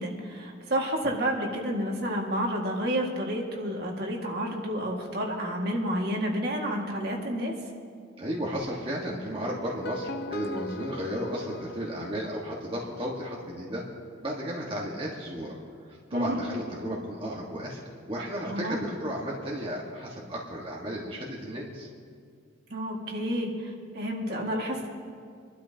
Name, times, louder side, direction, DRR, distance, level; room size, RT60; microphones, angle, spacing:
voice 1, 0.0-7.5 16.1-16.4 18.5-18.8 22.7-24.9, equal, 50° right, 0 dB, 1.9 m, -30 dB
voice 2, 8.2-13.8 14.2-15.5 15.9-21.9, equal, 25° right, -3 dB, 1.4 m, -34 dB
sound 1, 9.6-12.8, left 1 dB, 55° left, 0.6 m, -39 dB
26.0 x 12.0 x 2.8 m, 2.1 s
head